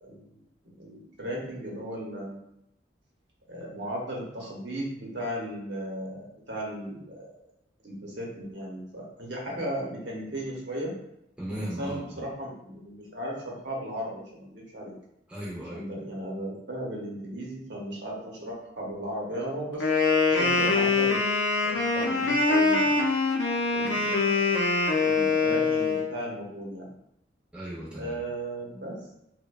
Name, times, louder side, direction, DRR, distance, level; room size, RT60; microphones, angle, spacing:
voice 1, 0.0-2.4 3.5-7.3 7.8-10.9 11.8-14.9 15.7-19.9 20.3-21.2 21.6-23.0 23.7-24.6 25.0-26.9 28.0-29.1, right 1 dB, 75° right, -3 dB, 0.8 m, -36 dB
voice 2, 11.4-12.2 15.3-15.9 27.5-28.2, equal, 5° right, -6 dB, 0.4 m, -36 dB
Wind instrument woodwind instrument, 19.8-26.1, left 3 dB, 85° left, 0.5 m, -24 dB
2.7 x 2.1 x 2.3 m, 0.78 s
head